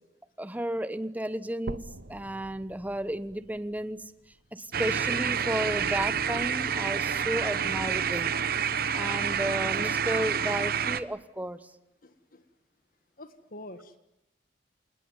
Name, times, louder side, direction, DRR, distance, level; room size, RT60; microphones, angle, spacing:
voice 1, 0.4-4.0 4.5-8.3 8.9-11.6, right 1 dB, 10° right, 13 dB, 1.1 m, -33 dB
sound 1, 1.7-5.7 6.2-6.3 6.9-7.0 7.3-7.4 8.3-8.4, right 2 dB, 80° right, 1.0 m, -45 dB
sound 2, 4.7-11.0, right 7 dB, 55° right, 1.0 m, -28 dB
voice 2, 12.0-12.4 13.2-14.0, left 1 dB, 55° left, 10 dB, 1.6 m, -46 dB
27.5 x 20.0 x 9.7 m, 0.90 s
head